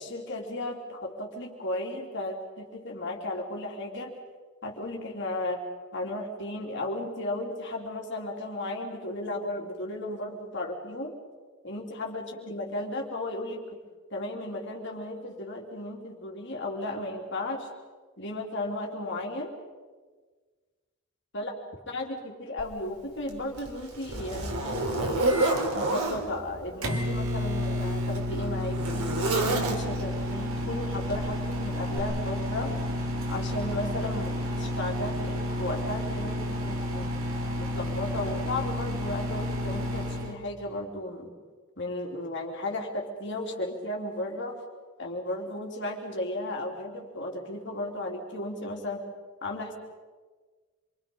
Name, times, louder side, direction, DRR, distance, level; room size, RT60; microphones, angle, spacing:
voice 1, 0.0-4.2 4.6-5.6 5.9-11.1 11.6-13.8 14.1-17.7 18.2-19.5 21.3-21.5 21.9-25.2 25.7-29.1 29.4-32.7 33.3-37.1 37.6-41.3 41.8-44.6 45.0-49.0 49.4-49.7, left 1 dB, 55° left, 0 dB, 3.5 m, -35 dB
Zipper (clothing), 22.6-22.7 23.3-26.2 27.2-30.1 31.1-31.4 31.9-32.0, right 2 dB, 90° right, 3.3 m, -29 dB
Microwave oven, 25.3-40.3, left 1 dB, 65° right, 2.5 m, -31 dB
27.0 x 24.0 x 5.5 m, 1.4 s
head